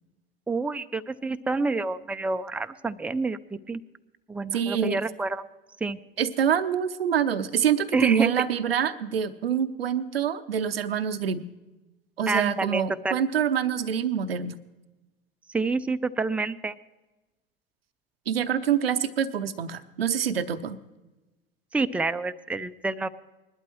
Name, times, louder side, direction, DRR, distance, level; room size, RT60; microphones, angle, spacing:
voice 1, 0.5-3.4 3.7-3.8 4.3-5.4 5.8-6.0 7.9-8.3 12.3-13.2 15.5-16.8 21.7-23.1, right 3 dB, 5° right, 9 dB, 0.5 m, -28 dB
voice 2, 4.5-5.0 6.2-11.5 12.2-14.6 18.3-20.8, right 8 dB, 85° right, 12 dB, 0.6 m, -26 dB
20.5 x 12.0 x 3.1 m, 1.1 s
hypercardioid pair, 80°, 29 cm